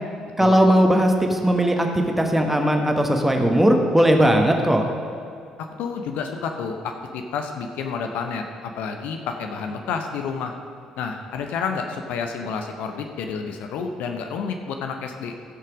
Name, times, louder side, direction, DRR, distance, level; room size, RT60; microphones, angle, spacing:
voice 1, 0.4-4.9, equal, 5° right, 3 dB, 1.4 m, -18 dB
voice 2, 5.6-10.5 11.0-15.3, left 5 dB, 60° left, 5 dB, 0.7 m, -30 dB
15.0 x 6.5 x 5.1 m, 2.4 s
figure-of-eight pair, 50°, 3 cm